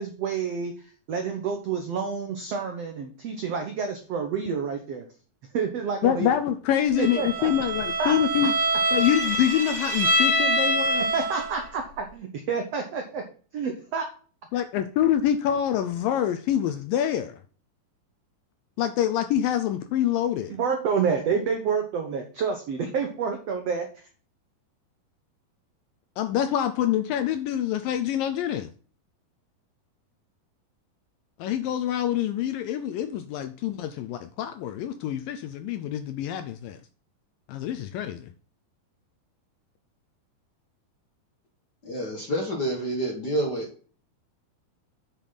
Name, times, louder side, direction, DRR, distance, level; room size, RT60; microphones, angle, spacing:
voice 1, 0.0-5.1 5.5-6.3 7.0-7.5 8.0-8.1 11.0-13.2 13.5-14.0 20.5-24.1, right 6 dB, 80° right, 5 dB, 1.4 m, -29 dB
voice 2, 6.0-8.5 8.9-11.0 14.5-17.4 18.8-20.6 26.2-28.7 31.4-36.8 37.5-38.3, left 10 dB, 80° left, 10 dB, 2.1 m, -26 dB
Bowed string instrument, 7.0-11.6, right 1 dB, 5° left, 3.4 m, -25 dB
voice 3, 41.8-43.7, right 1 dB, 50° left, 1 dB, 1.2 m, -28 dB
9.0 x 6.2 x 4.0 m, 0.41 s
omnidirectional pair, 4.5 m